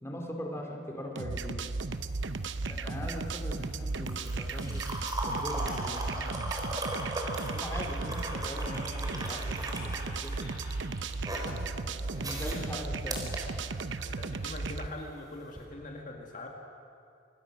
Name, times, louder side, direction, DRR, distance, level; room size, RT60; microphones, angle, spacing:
voice 1, 0.0-1.6 2.6-4.9 5.2-6.3 7.5-10.5 12.2-13.2, equal, 15° left, 1 dB, 3.0 m, -41 dB
sound 1, 1.2-14.9, right 3 dB, 75° right, 0.8 m, -35 dB
sound 2, 1.9-14.2 15.5-15.6, right 1 dB, 20° right, 3.8 m, -39 dB
voice 2, 11.4-13.0 14.0-16.5, left 2 dB, 45° left, 0 dB, 2.0 m, -44 dB
27.0 x 21.5 x 6.3 m, 2.4 s
head